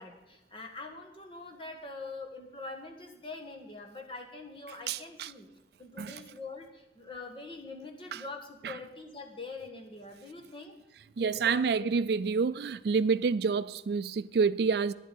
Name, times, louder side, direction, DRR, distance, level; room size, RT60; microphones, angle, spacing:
voice 1, 0.0-5.5 5.8-10.7 11.2-11.9, left 3 dB, 30° left, 1.4 m, -44 dB
voice 2, 4.9-5.3 6.0-6.2 8.1-8.2 8.6-8.8 11.2-14.9, right 5 dB, 60° right, 0.4 m, -28 dB
10.5 x 7.9 x 9.0 m
head